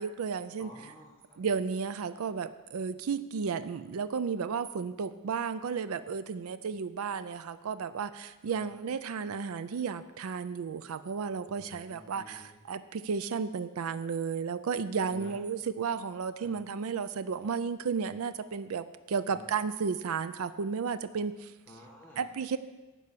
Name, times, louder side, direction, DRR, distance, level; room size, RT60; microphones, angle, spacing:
voice 1, 0.0-0.7 1.4-21.5 22.2-22.6, right 6 dB, 70° right, 14 dB, 0.4 m, -33 dB
voice 2, 0.6-1.4 8.4-8.6 11.5-12.5 15.1-15.3 16.4-16.5 19.3-19.4 21.7-22.2, left 1 dB, 10° left, -5 dB, 1.3 m, -51 dB
11.5 x 5.7 x 8.2 m, 1.2 s
head